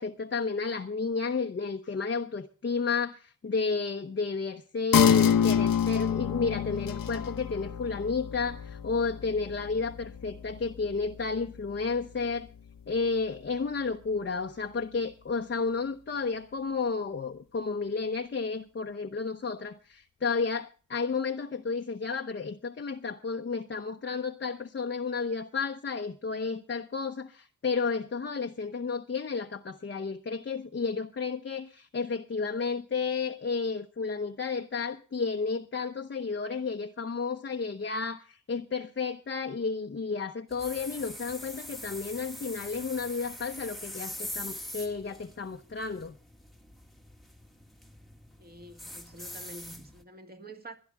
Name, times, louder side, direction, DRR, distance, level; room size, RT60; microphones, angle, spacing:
voice 1, 0.0-12.5 12.9-46.1, left 4 dB, 35° left, 0.9 m, -32 dB
sound 1, 4.9-11.9 12.3-12.4, left 8 dB, 80° left, 1.0 m, -28 dB
sound 2, 40.5-50.0, left 1 dB, ahead, 1.5 m, -43 dB
voice 2, 48.4-50.8, right 1 dB, 30° right, 2.1 m, -47 dB
22.0 x 11.5 x 3.5 m
wide cardioid pair, 135°, 33 cm